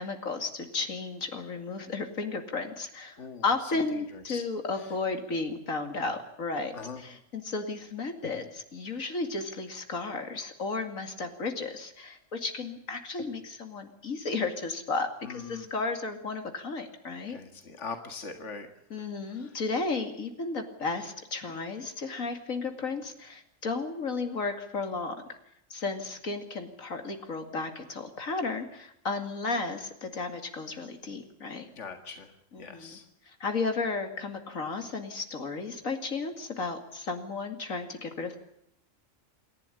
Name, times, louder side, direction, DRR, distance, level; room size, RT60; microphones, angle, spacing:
voice 1, 0.0-17.4 18.9-25.2 25.7-31.7 32.5-33.0 33.3-38.4, left 3 dB, 85° left, 6 dB, 2.8 m, -33 dB
voice 2, 3.2-4.4 4.7-4.9 6.7-7.0 15.2-15.7 17.3-18.7 19.3-19.6 31.8-33.1, left 5 dB, 65° left, 6 dB, 2.3 m, -42 dB
27.5 x 12.0 x 9.9 m, 0.77 s
omnidirectional pair, 1.4 m